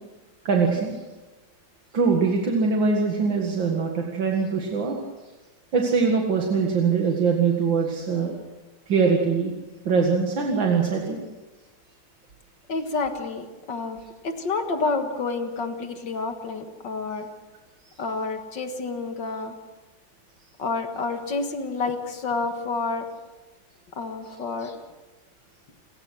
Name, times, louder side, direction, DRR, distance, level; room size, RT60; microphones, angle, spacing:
voice 1, 0.4-1.0 1.9-5.0 5.7-8.3 8.9-9.5 9.8-11.2 17.8-18.0, right 5 dB, 80° right, 0 dB, 2.6 m, -22 dB
voice 2, 12.7-17.3 18.0-19.5 20.6-23.1 23.9-24.8, left 3 dB, 70° left, 6 dB, 2.3 m, -29 dB
28.0 x 15.0 x 6.3 m, 1.2 s
omnidirectional pair, 2.0 m